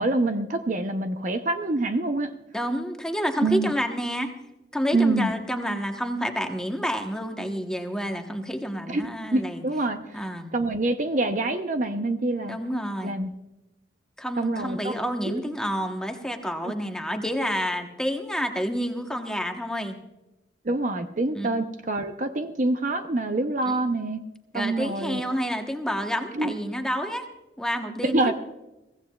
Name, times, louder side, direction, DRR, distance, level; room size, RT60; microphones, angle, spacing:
voice 1, 0.0-2.3 3.4-3.7 4.9-5.3 8.9-10.2 10.5-12.6 13.0-13.3 14.4-14.9 15.2-15.4 16.6-16.7 20.6-24.2 24.5-25.2 26.3-26.5 28.0-28.3, right 2 dB, 45° right, 8 dB, 0.7 m, -26 dB
voice 2, 2.5-4.3 4.7-9.6 10.1-10.5 12.5-13.2 14.2-20.0 21.3-21.5 23.7-23.9 24.5-27.3 27.6-28.3, equal, 5° left, 4 dB, 1.0 m, -29 dB
22.5 x 16.0 x 2.3 m, 0.96 s
head